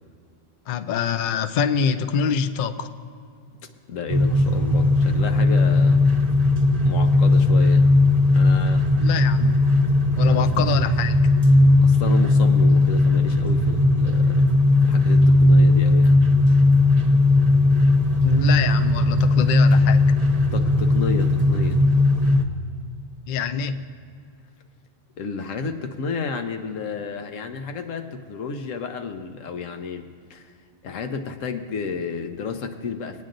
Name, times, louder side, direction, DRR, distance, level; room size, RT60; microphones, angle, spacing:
voice 1, 0.7-2.9 9.0-9.6 10.2-11.2 18.2-20.0 23.3-23.9, left 7 dB, 60° left, 9 dB, 0.5 m, -25 dB
voice 2, 3.9-6.1 6.8-7.9 8.3-8.9 10.3-10.5 11.8-14.4 14.8-16.2 20.5-21.9 25.2-30.5 30.8-33.2, left 5 dB, 85° left, 6 dB, 1.1 m, -32 dB
sound 1, 4.1-22.4, left 2 dB, 35° right, 0.7 m, -17 dB
20.0 x 9.2 x 2.6 m, 2.3 s
omnidirectional pair, 1.3 m